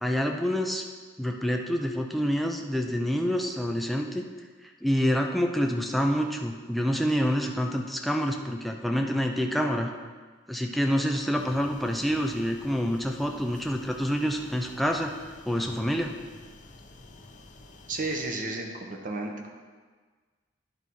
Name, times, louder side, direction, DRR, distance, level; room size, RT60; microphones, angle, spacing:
voice 1, 0.0-0.8 1.2-4.2 4.8-9.9 10.5-15.1 15.5-16.1, equal, ahead, 2 dB, 0.5 m, -27 dB
sound 1, 11.3-18.3, left 2 dB, 40° left, 0.7 m, -50 dB
voice 2, 17.9-19.3, right 2 dB, 45° right, 2 dB, 1.0 m, -32 dB
10.5 x 4.1 x 4.6 m, 1.5 s
head